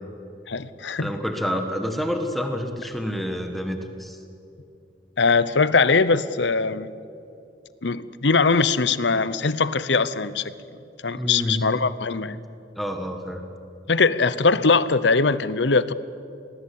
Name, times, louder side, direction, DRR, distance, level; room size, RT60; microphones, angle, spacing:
voice 1, 0.5-1.1 5.2-6.9 7.8-10.5 11.0-12.4 13.9-15.9, left 4 dB, 75° left, 15 dB, 0.8 m, -21 dB
voice 2, 1.0-4.2 11.2-11.6 12.7-13.4, equal, ahead, 4 dB, 1.5 m, -28 dB
26.0 x 19.0 x 8.6 m, 2.7 s
head